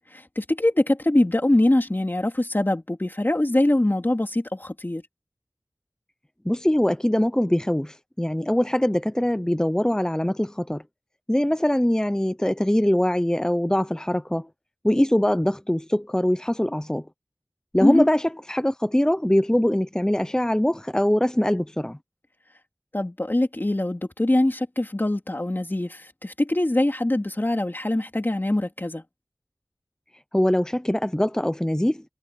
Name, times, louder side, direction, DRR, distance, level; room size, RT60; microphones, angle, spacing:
voice 1, 0.1-5.0 17.8-18.1 22.9-29.0, left 1 dB, 35° left, 2.8 m, -23 dB
voice 2, 6.4-10.8 11.3-14.5 14.8-17.0 17.7-22.0 30.3-32.0, left 1 dB, 10° left, 0.7 m, -22 dB
wide cardioid pair, 50°, 6 cm